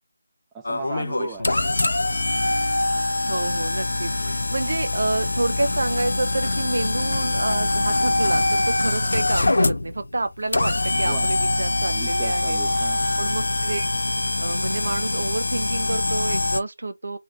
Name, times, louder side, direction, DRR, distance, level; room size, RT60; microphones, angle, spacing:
voice 1, 0.5-1.6 11.0-11.3 11.9-13.1, right 5 dB, 10° right, 0.4 m, -37 dB
sound 1, 0.6-16.6, left 2 dB, 65° left, 0.4 m, -24 dB
voice 2, 3.3-12.6 13.2-13.9 14.4-17.2, right 2 dB, 60° right, 0.6 m, -28 dB
3.1 x 2.5 x 2.8 m
figure-of-eight pair, 160°, 0 cm